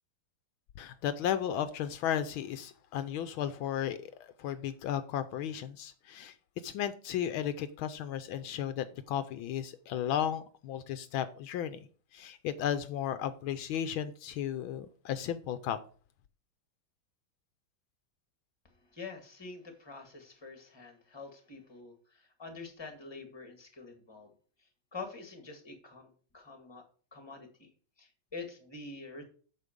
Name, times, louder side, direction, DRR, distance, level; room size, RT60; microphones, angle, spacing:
voice 1, 0.8-4.1 4.4-6.3 6.6-11.9 12.1-15.8, left 10 dB, 80° left, 1.4 m, -34 dB
voice 2, 18.9-24.3 24.9-26.8 27.1-27.7 28.0-29.2, left 4 dB, 15° left, 1.8 m, -46 dB
8.3 x 6.6 x 5.2 m
omnidirectional pair, 2.3 m